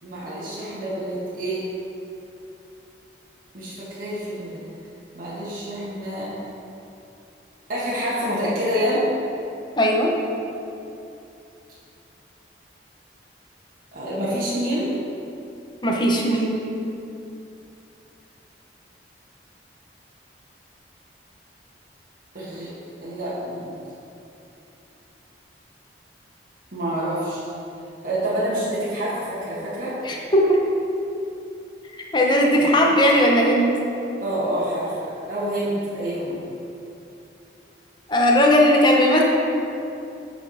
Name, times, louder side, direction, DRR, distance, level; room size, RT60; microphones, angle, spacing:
voice 1, 0.0-1.7 3.5-4.6 5.1-6.3 7.7-9.1 13.9-14.9 22.3-22.7 23.0-23.7 26.7-27.4 28.0-30.0 32.5-32.6 34.2-36.4, equal, 50° right, -10 dB, 1.7 m, -27 dB
voice 2, 9.8-10.1 15.8-16.6 30.0-30.6 32.1-33.7 38.1-39.2, equal, 25° left, -1 dB, 0.9 m, -17 dB
9.1 x 4.5 x 4.9 m, 2.7 s
head